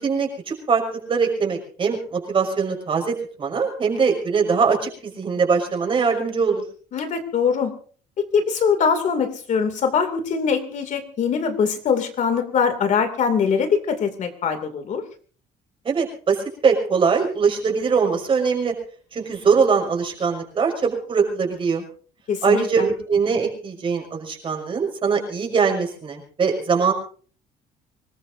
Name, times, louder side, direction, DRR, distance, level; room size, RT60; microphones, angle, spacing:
voice 1, 0.0-6.6 15.8-18.7 19.1-21.8 22.4-26.9, right 5 dB, 30° right, 2 dB, 5.7 m, -22 dB
voice 2, 6.9-7.7 8.2-15.0 22.3-22.9, left 6 dB, 50° left, 8 dB, 2.6 m, -22 dB
25.5 x 20.0 x 2.7 m, 0.43 s
cardioid pair, 155°, 17 cm